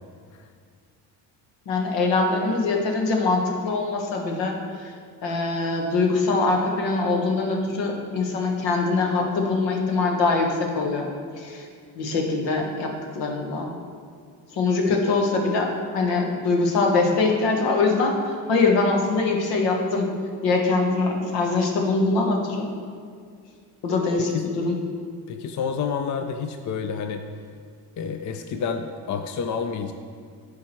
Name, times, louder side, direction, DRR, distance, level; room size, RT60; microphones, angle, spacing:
voice 1, 1.7-4.9 5.2-10.5 10.7-11.1 11.4-11.7 12.0-13.7 14.5-15.7 15.9-20.1 20.4-22.7 23.8-24.7, left 3 dB, 75° left, 1 dB, 1.4 m, -23 dB
voice 2, 25.3-27.2 28.0-29.9, left 6 dB, 45° left, 7 dB, 0.5 m, -29 dB
10.5 x 4.8 x 4.5 m, 2.1 s
cardioid pair, 85°, 43 cm